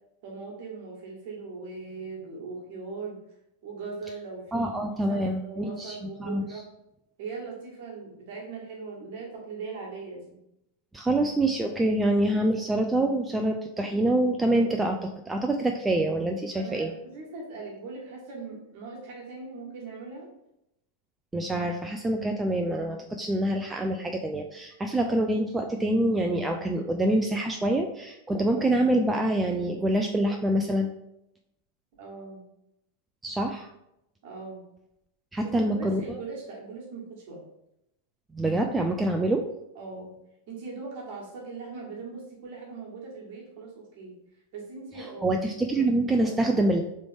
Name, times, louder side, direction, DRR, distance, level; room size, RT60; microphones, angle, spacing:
voice 1, 0.2-3.2 3.6-4.7 5.1-6.7 7.2-10.4 16.5-20.3 32.0-32.4 34.2-34.6 35.6-37.4 39.7-40.1 40.5-44.1 44.5-45.4 45.7-45.9 46.2-46.5, right 4 dB, 50° right, -2 dB, 1.4 m, -40 dB
voice 2, 4.5-6.6 10.9-16.9 21.3-30.9 33.2-33.7 35.3-36.0 38.3-39.4 45.0-46.8, right 1 dB, 10° right, 3 dB, 0.3 m, -26 dB
3.7 x 3.2 x 3.4 m, 0.83 s
figure-of-eight pair, 90°, 0 cm